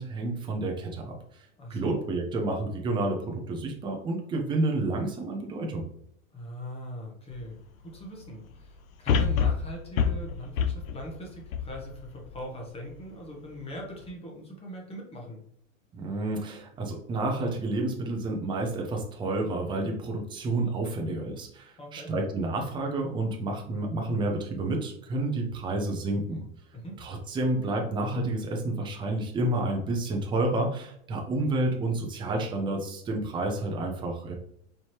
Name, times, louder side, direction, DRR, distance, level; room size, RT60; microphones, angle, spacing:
voice 1, 0.0-1.4 1.7-5.8 15.9-26.4 27.0-34.3, right 2 dB, 10° right, 2 dB, 0.6 m, -30 dB
voice 2, 1.6-2.0 6.3-15.4 21.8-22.1 26.7-27.0, equal, 15° left, -1 dB, 1.0 m, -41 dB
sound 1, 7.3-7.4 9.1-12.4 12.9-13.0, left 6 dB, 90° left, 0.6 m, -27 dB
4.4 x 2.7 x 3.1 m, 0.70 s
supercardioid pair, 130°, 40 cm